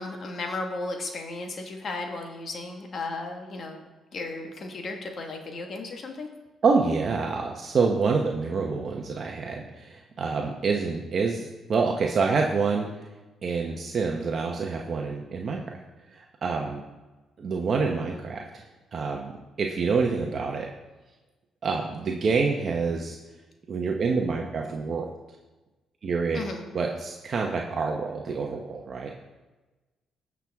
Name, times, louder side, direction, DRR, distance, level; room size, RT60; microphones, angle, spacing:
voice 1, 0.0-3.8 4.1-6.3 26.3-26.7, left 3 dB, 50° left, 3 dB, 1.6 m, -35 dB
voice 2, 6.6-12.9 13.4-15.6 16.1-16.8 17.4-18.6 18.9-19.3 19.6-20.7 21.6-23.2 23.7-25.1 26.0-26.4 26.7-29.1, right 4 dB, 50° right, 1 dB, 0.9 m, -27 dB
16.5 x 6.1 x 3.6 m, 1.2 s
cardioid pair, 90°, 0 cm